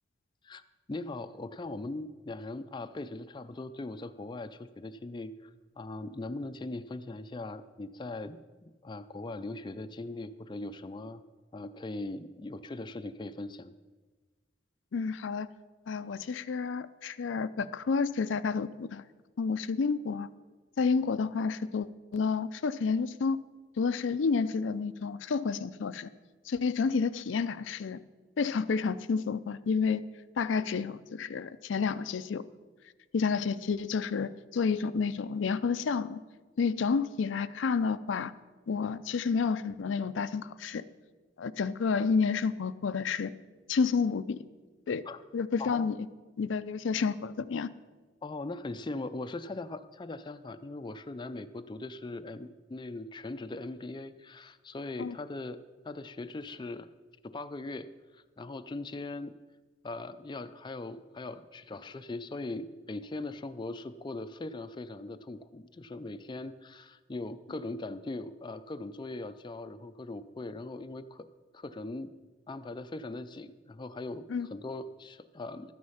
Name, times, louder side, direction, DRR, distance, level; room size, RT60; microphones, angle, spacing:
voice 1, 0.4-11.2 11.5-13.7 45.1-45.2 45.6-45.9 48.2-55.6 55.8-56.9 57.2-57.9 58.1-59.3 59.8-71.3 71.5-72.1 72.5-74.2 74.5-75.7, left 2 dB, 25° left, 10 dB, 0.4 m, -40 dB
voice 2, 14.9-15.5 15.9-19.0 19.4-20.3 20.8-21.9 22.1-23.4 23.8-26.1 26.5-28.0 28.4-30.0 30.4-32.4 33.1-36.2 36.6-38.3 38.7-40.8 41.4-43.3 43.7-44.4 44.9-45.1 45.3-46.0 46.4-47.7 55.0-55.1 74.3-74.5, left 5 dB, 85° left, 13 dB, 0.4 m, -30 dB
12.5 x 9.5 x 5.6 m, 1.3 s
head